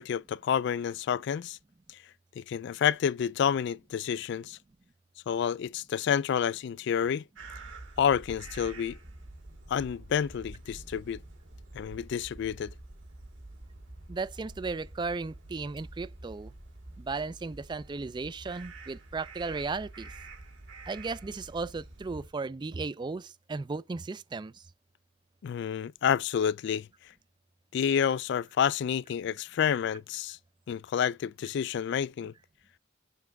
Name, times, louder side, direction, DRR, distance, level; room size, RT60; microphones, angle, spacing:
voice 1, 0.0-1.6 2.4-4.6 5.3-7.2 8.0-9.0 9.7-11.2 11.7-12.7 25.4-26.9 27.7-30.4 30.7-32.3, left 8 dB, 65° left, 0.3 m, -29 dB
sound 1, 7.4-22.3, right 2 dB, 75° right, 2.4 m, -47 dB
voice 2, 14.1-16.5 17.0-20.1 20.9-24.6, right 4 dB, 25° right, 0.4 m, -35 dB
7.2 x 3.4 x 5.8 m
head